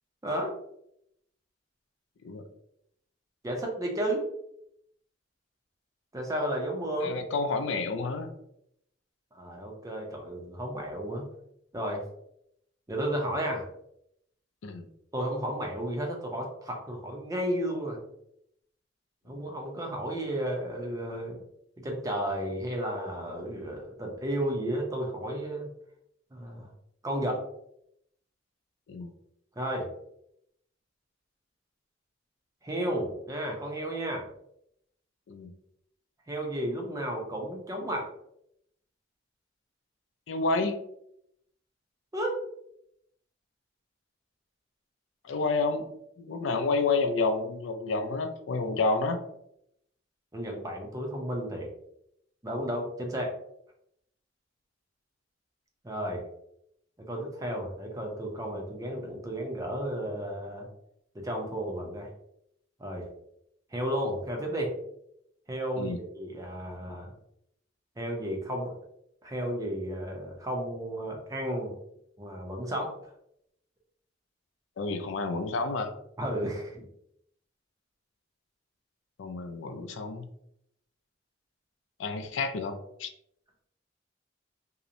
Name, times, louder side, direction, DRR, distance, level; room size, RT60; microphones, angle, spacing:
voice 1, 0.2-0.5 3.4-4.3 6.1-7.1 9.3-11.2 11.7-12.0 12.9-13.7 15.1-18.0 19.3-21.4 21.8-25.7 26.3-26.7 27.0-27.4 29.6-29.9 32.6-34.3 36.3-38.1 42.1-42.4 50.3-51.7 52.4-53.3 55.8-56.2 57.1-60.7 61.1-62.1 62.8-63.1 63.7-64.7 65.5-67.1 68.0-68.7 69.2-71.7 72.2-72.9 76.2-76.9, right 1 dB, 20° right, 0 dB, 0.5 m, -33 dB
voice 2, 7.0-8.3 14.6-14.9 19.3-19.4 28.9-29.1 35.3-35.5 40.3-40.8 45.2-45.9 46.2-49.2 65.8-66.0 74.8-75.9 79.2-80.3 82.0-83.1, left 3 dB, 85° left, 7 dB, 0.4 m, -29 dB
2.8 x 2.0 x 2.5 m, 0.76 s
head